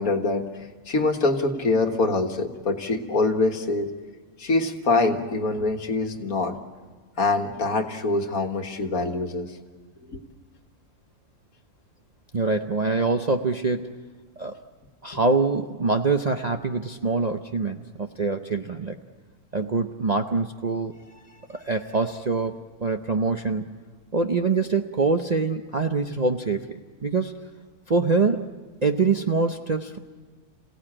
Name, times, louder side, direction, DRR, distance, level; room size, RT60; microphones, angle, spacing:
voice 1, 0.0-3.9 4.4-6.6 7.2-9.6 10.1-10.2, left 3 dB, 70° left, 5 dB, 1.9 m, -24 dB
voice 2, 12.3-14.0 14.4-14.6 15.0-19.0 19.5-23.7 24.1-27.4 27.9-28.5 28.8-30.0, right 4 dB, 40° right, 4 dB, 0.6 m, -25 dB
27.5 x 17.0 x 8.8 m, 1.4 s
omnidirectional pair, 1.6 m